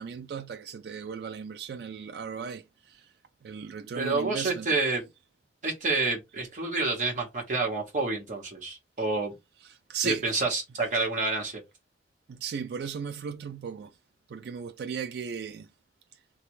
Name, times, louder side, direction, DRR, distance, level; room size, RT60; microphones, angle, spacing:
voice 1, 0.0-2.6 2.9-3.0 3.4-4.7 9.9-10.2 12.3-13.9 14.3-15.7, right 6 dB, 65° right, 0.3 m, -36 dB
voice 2, 3.9-5.1 5.6-9.3 10.0-11.6, right 3 dB, 45° right, 1.1 m, -28 dB
3.2 x 2.3 x 3.0 m
head